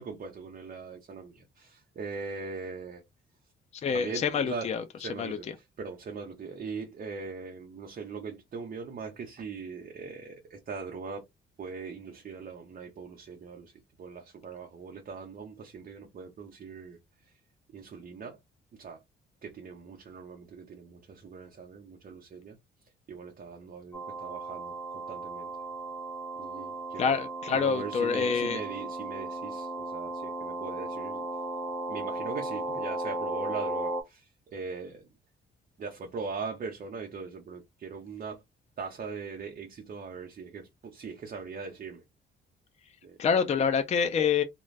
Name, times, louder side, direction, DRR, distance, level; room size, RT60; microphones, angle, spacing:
voice 1, 0.0-3.0 3.9-4.7 5.0-11.3 11.6-17.4 17.7-18.4 18.7-19.0 19.4-22.6 23.1-25.5 26.4-27.2 27.5-31.2 31.9-35.1 35.8-38.4 38.8-42.0 43.0-43.2, right 5 dB, 45° right, 0.7 m, -41 dB
voice 2, 3.7-4.8 5.2-5.4 27.0-28.6 43.2-44.4, left 6 dB, 35° left, 0.4 m, -26 dB
sound 1, 23.9-34.0, right 2 dB, 15° left, 0.8 m, -36 dB
2.4 x 2.2 x 3.2 m
cardioid pair, 90°, 20 cm